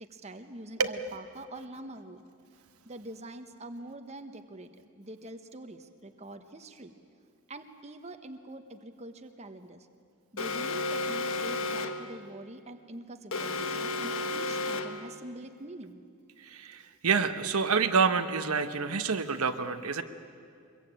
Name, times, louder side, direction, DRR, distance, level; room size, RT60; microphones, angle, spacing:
voice 1, 0.0-2.2 2.8-6.9 7.5-9.9 10.3-16.0, right 1 dB, 30° right, 7 dB, 1.2 m, -45 dB
Alarm, 10.4-12.1 13.3-15.1, left 3 dB, 60° left, 1.4 m, -32 dB
voice 2, 16.4-20.0, right 5 dB, 80° right, 8 dB, 1.1 m, -28 dB
24.0 x 22.0 x 8.9 m, 2.3 s
head